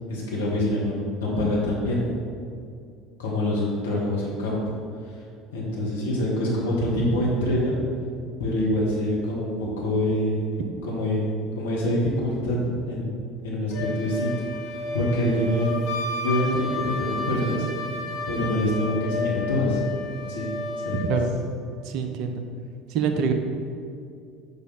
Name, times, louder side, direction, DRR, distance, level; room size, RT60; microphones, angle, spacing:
voice 1, 0.1-1.0 1.2-2.1 3.2-4.7 5.5-7.8 8.4-14.5 14.9-15.7 16.2-17.7 18.3-19.8 20.3-20.5 20.8-21.1, left 1 dB, 75° left, -4 dB, 1.7 m, -25 dB
Wind instrument woodwind instrument, 13.7-21.1, left 3 dB, 55° left, 1.5 m, -31 dB
voice 2, 21.8-22.4 22.9-23.3, right 6 dB, 55° right, 6 dB, 0.7 m, -25 dB
7.1 x 5.2 x 4.2 m, 2.3 s
figure-of-eight pair, 65°, 0 cm